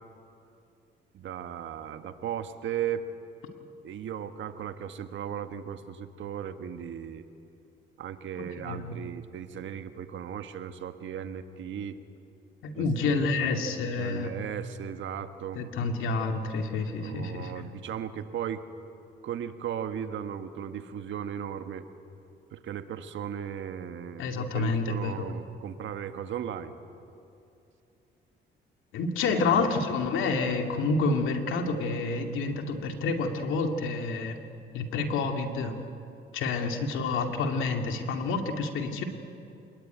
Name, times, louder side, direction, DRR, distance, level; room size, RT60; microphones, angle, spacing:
voice 1, 1.1-3.1 3.8-7.2 8.0-12.0 12.7-13.5 14.0-15.6 16.9-18.6 19.2-21.8 22.5-26.7, right 9 dB, 75° right, 9 dB, 1.6 m, -36 dB
voice 2, 8.4-9.0 12.6-14.3 15.5-17.7 24.2-25.3 28.9-34.4 34.7-35.8 36.3-39.0, left 4 dB, 85° left, 4 dB, 2.4 m, -29 dB
27.0 x 21.0 x 9.3 m, 2.6 s
cardioid pair, 90°, 20 cm